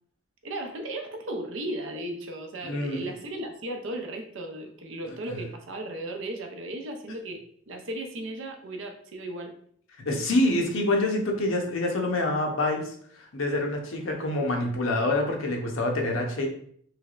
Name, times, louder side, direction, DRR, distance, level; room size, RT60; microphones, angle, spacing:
voice 1, 0.4-9.5, right 1 dB, 70° right, 3 dB, 0.6 m, -36 dB
voice 2, 2.6-3.0 5.3-5.4 10.0-12.9 13.3-16.5, left 2 dB, 80° left, 2 dB, 0.7 m, -26 dB
3.3 x 3.1 x 2.4 m, 0.62 s
head